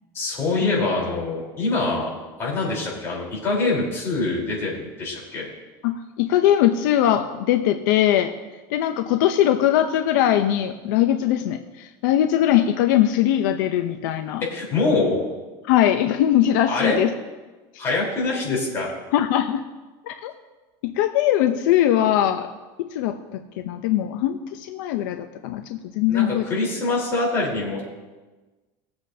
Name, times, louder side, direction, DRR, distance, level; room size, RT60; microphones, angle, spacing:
voice 1, 0.1-2.1 2.4-5.4 14.4-15.2 16.7-17.0 17.8-18.9 26.1-27.8, left 3 dB, 25° left, -4 dB, 3.8 m, -24 dB
voice 2, 5.8-8.3 8.7-14.4 15.7-17.1 19.1-19.6 20.1-20.3 20.8-22.5 22.8-23.4 23.6-26.4, left 11 dB, 80° left, 7 dB, 0.7 m, -21 dB
20.5 x 7.9 x 2.7 m, 1.2 s
cardioid pair, 170°, 10 cm